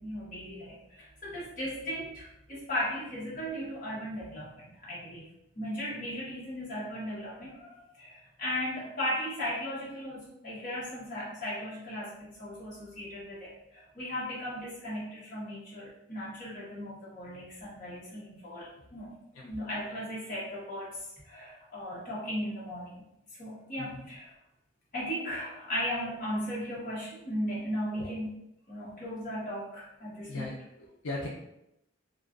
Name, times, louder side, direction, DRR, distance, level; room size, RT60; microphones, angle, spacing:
voice 1, 0.0-5.3 5.5-19.1 19.4-21.0 21.2-23.0 23.4-24.3 24.9-28.3 28.7-30.5, equal, 40° left, -7 dB, 0.9 m, -37 dB
voice 2, 23.8-24.1 27.9-28.1 30.3-31.3, left 2 dB, 80° left, -3 dB, 0.5 m, -39 dB
2.4 x 2.2 x 2.4 m, 0.82 s
head